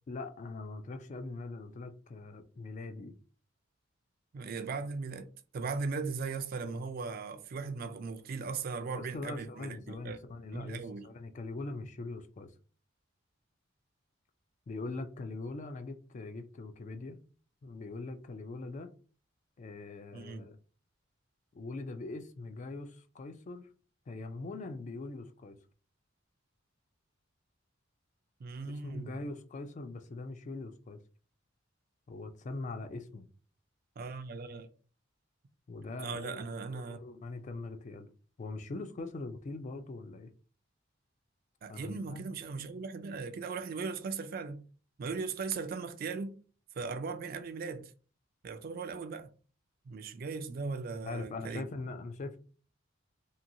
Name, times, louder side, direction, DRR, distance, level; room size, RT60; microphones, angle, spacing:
voice 1, 0.1-3.1 8.9-12.5 14.7-17.2 17.6-18.9 19.6-20.6 21.5-23.7 24.1-25.6 28.8-31.0 32.1-33.3 35.7-36.4 36.7-38.1 38.4-40.3 41.7-42.2 51.0-52.4, left 3 dB, 40° left, 0.3 m, -42 dB
voice 2, 4.3-10.2 10.5-11.1 20.1-20.5 28.4-29.2 34.0-34.7 36.0-37.0 41.6-44.6 45.0-46.4 46.8-47.9 48.4-49.3 49.9-51.6, right 4 dB, 50° right, 0.3 m, -38 dB
2.8 x 2.6 x 2.5 m
head